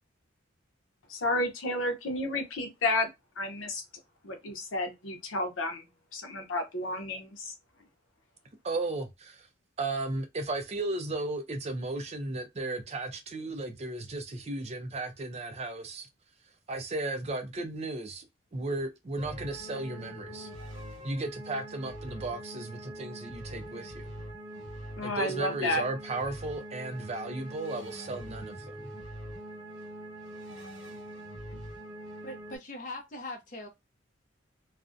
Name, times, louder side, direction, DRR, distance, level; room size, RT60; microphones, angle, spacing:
voice 1, 1.1-3.1 3.4-3.8 4.2-5.8 6.1-7.5 25.0-25.8 27.3-27.4, left 2 dB, 85° left, 0.7 m, -31 dB
voice 2, 8.6-9.5 9.8-16.1 16.7-18.3 18.5-20.5 21.0-24.1 25.0-28.9, right 2 dB, 30° right, 0.4 m, -35 dB
sound 1, 19.2-32.6, right 1 dB, 85° right, 0.9 m, -43 dB
voice 3, 32.2-33.7, left 2 dB, 40° left, 0.6 m, -41 dB
2.4 x 2.1 x 2.4 m
head